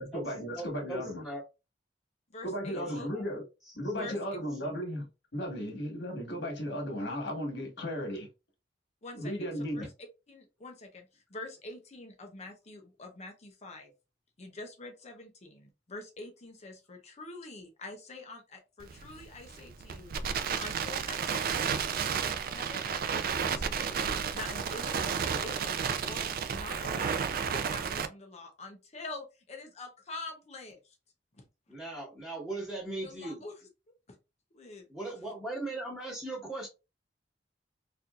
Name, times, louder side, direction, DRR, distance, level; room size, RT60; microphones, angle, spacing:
voice 1, 0.0-1.2 2.4-3.4 3.8-8.3 9.1-9.9, equal, 65° left, 1.5 m, -35 dB
voice 2, 0.5-1.4 2.7-3.2 3.7-4.1 4.6-4.7 31.7-33.4 34.9-36.7, right 2 dB, 5° left, 1.5 m, -39 dB
voice 3, 2.3-3.1 4.0-4.2 9.0-9.3 9.7-9.8 10.3-13.9 14.4-21.8 22.1-25.1 25.4-26.3 26.5-27.2 27.5-30.9 31.4-31.5 33.0-33.5 34.5-34.9, left 2 dB, 40° left, 0.7 m, -46 dB
Crackle, 18.8-28.1, right 6 dB, 55° right, 0.4 m, -32 dB
4.3 x 2.6 x 2.4 m
head